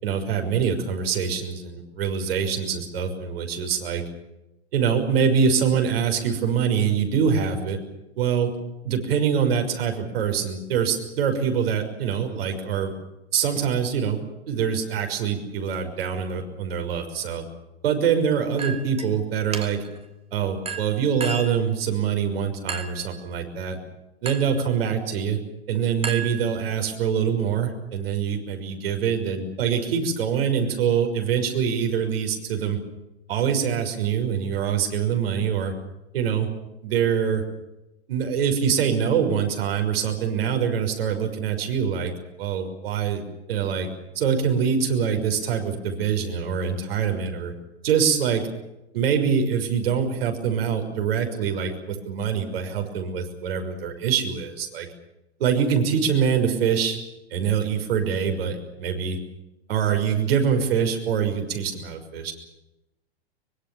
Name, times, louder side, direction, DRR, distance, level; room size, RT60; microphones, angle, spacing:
voice 1, 0.0-4.0 4.7-7.8 8.2-8.5 8.8-12.9 13.3-14.2 14.5-17.4 17.8-19.8 20.3-23.8 24.2-25.4 25.7-32.8 33.3-35.7 36.1-36.5 36.8-37.4 38.1-42.1 42.4-43.2 43.5-43.9 44.1-47.5 47.8-48.4 48.9-54.9 55.4-57.0 57.3-59.2 59.7-62.3, right 7 dB, 65° right, 5 dB, 6.1 m, -24 dB
Chink clink, 18.6-19.1 19.5-20.0 20.7-21.6 22.7-23.1 24.3-24.6 26.0-26.8, right 5 dB, 20° right, 2.5 m, -33 dB
24.5 x 23.0 x 7.2 m, 0.93 s
figure-of-eight pair, 100°, 32 cm